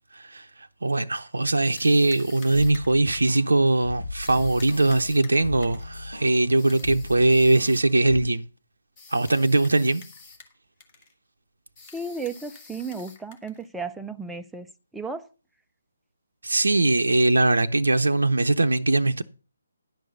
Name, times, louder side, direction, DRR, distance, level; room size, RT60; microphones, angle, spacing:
voice 1, 0.1-8.5 9.1-10.0 16.4-19.2, right 2 dB, 65° right, 0.6 m, -21 dB
sound 1, 1.7-3.5 4.2-5.9 6.6-8.0 9.0-10.6 10.8-11.1 11.8-13.7, left 4 dB, 20° left, 1.5 m, -48 dB
sound 2, 2.5-8.3, left 2 dB, 85° left, 1.5 m, -38 dB
voice 2, 11.9-14.7 14.9-15.3, right 4 dB, 5° right, 0.4 m, -34 dB
10.5 x 5.5 x 6.7 m
figure-of-eight pair, 145°, 0 cm